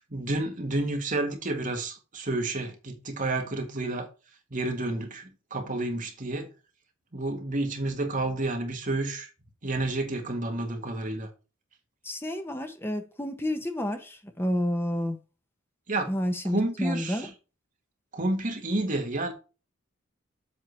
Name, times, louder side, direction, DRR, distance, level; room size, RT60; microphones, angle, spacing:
voice 1, 0.1-4.1 4.5-6.5 7.1-9.3 9.6-11.3 15.9-16.1 16.5-17.3 18.1-19.3, right 2 dB, 40° right, 1.7 m, -30 dB
voice 2, 12.0-15.2 16.1-17.3, left 1 dB, 10° left, 1.1 m, -30 dB
7.6 x 3.9 x 6.3 m
head